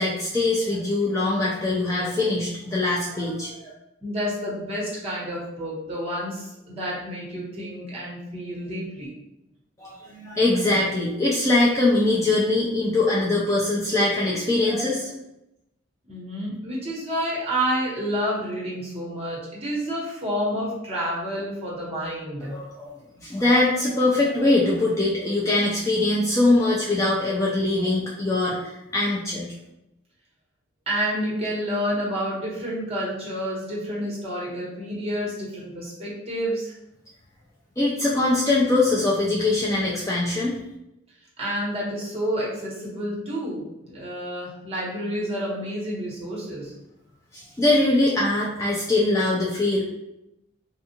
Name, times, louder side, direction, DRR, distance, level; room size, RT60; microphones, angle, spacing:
voice 1, 0.0-3.7 9.8-15.1 22.4-22.9 23.2-29.5 37.8-40.6 47.3-49.8, left 2 dB, 15° left, -5 dB, 0.3 m, -22 dB
voice 2, 4.0-9.1 16.1-22.6 30.9-36.7 41.4-46.7, equal, 30° right, -5 dB, 1.0 m, -29 dB
3.5 x 2.3 x 2.8 m, 0.88 s
head